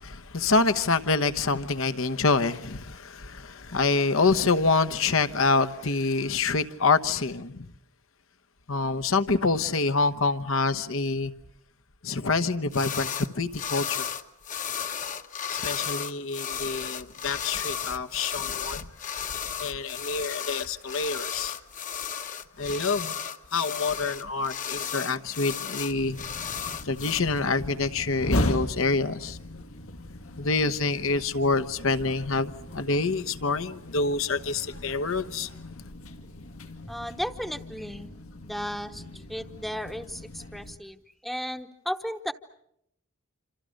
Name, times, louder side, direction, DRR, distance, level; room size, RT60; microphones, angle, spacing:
voice 1, 0.0-7.7 8.7-11.3 12.0-14.0 15.5-18.9 19.6-21.6 22.6-23.2 23.5-26.2 26.8-29.4 30.4-35.5, left 3 dB, 70° left, 1.1 m, -26 dB
sound 1, 12.7-13.3 13.5-27.2, left 8 dB, 35° left, 1.0 m, -34 dB
sound 2, 25.9-40.8, left 1 dB, 90° left, 2.6 m, -37 dB
voice 2, 36.9-38.1 38.4-39.0 39.3-41.0 41.2-42.3, equal, ahead, 0.9 m, -34 dB
27.5 x 27.0 x 6.5 m
head